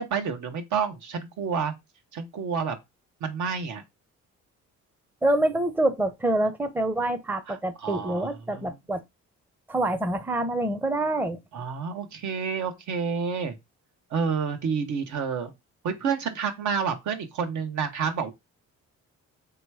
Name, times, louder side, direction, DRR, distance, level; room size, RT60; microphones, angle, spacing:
voice 1, 0.0-1.7 2.1-2.8 3.2-3.8 7.5-8.8 11.5-13.6 14.1-15.5 15.8-18.3, right 6 dB, 70° right, 1.1 m, -29 dB
voice 2, 5.2-9.0 9.7-11.4, right 1 dB, 5° right, 0.6 m, -26 dB
3.4 x 3.0 x 4.7 m
cardioid pair, 90°, 30 cm